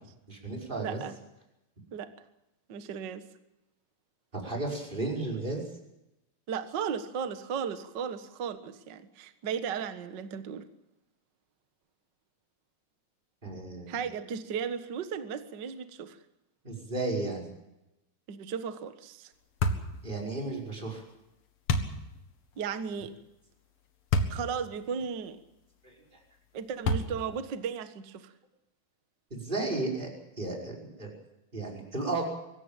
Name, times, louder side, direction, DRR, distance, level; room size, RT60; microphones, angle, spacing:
voice 1, 0.3-1.0 4.3-5.6 13.4-14.0 16.6-17.4 20.0-21.0 25.8-26.2 29.3-30.1 30.4-31.1 31.5-32.2, right 2 dB, 10° right, -1 dB, 5.3 m, -34 dB
voice 2, 0.8-1.2 1.9-2.1 2.7-3.2 6.5-10.7 13.9-16.2 18.3-19.3 22.6-23.1 24.3-25.4 26.5-28.3, right 7 dB, 75° right, 10 dB, 1.0 m, -35 dB
sound 1, 19.6-19.9 21.7-22.0 24.1-24.4 25.0-25.1 26.8-27.3, left 2 dB, 50° left, 2.1 m, -27 dB
24.5 x 14.5 x 9.0 m, 0.91 s
omnidirectional pair, 4.5 m